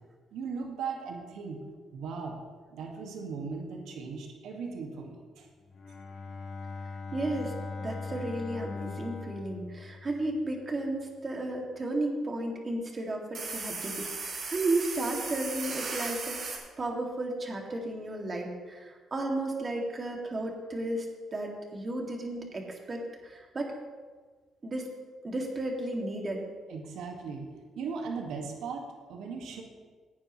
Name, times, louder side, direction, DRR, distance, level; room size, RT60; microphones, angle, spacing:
voice 1, 0.3-1.6 1.9-2.4 2.7-5.5 26.7-27.5 27.8-29.6, right 5 dB, 80° right, 1 dB, 1.9 m, -38 dB
Bowed string instrument, 5.6-10.5, left 4 dB, 55° left, 1.8 m, -40 dB
voice 2, 7.1-21.1 21.3-23.7 24.6-24.9 25.2-26.4, right 2 dB, 35° right, 1 dB, 2.3 m, -33 dB
sound 1, 13.3-16.6, right 4 dB, 60° right, 3.4 m, -36 dB
16.5 x 9.1 x 3.2 m, 1.5 s
cardioid pair, 90°, 0 cm